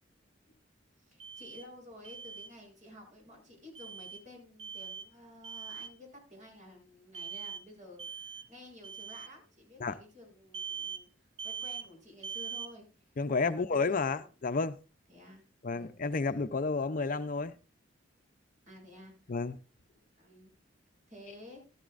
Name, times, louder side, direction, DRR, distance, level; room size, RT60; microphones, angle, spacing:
voice 1, 1.0-11.1 11.4-13.1 13.4-14.3 15.1-15.9 16.2-16.3 18.7-19.1 20.2-20.5 21.1-21.6, left 1 dB, 40° right, 7.5 m, -52 dB
Alarm, 1.2-1.7 2.0-2.5 3.8-4.2 4.6-5.1 5.4-5.9 7.1-7.6 8.0-8.5 8.8-9.3 10.5-11.0 11.4-11.9 12.2-12.7, right 6 dB, 75° right, 1.9 m, -41 dB
voice 2, 13.2-14.8 15.6-17.5 19.3-19.6, left 4 dB, 45° left, 0.6 m, -31 dB
14.5 x 13.5 x 2.5 m
head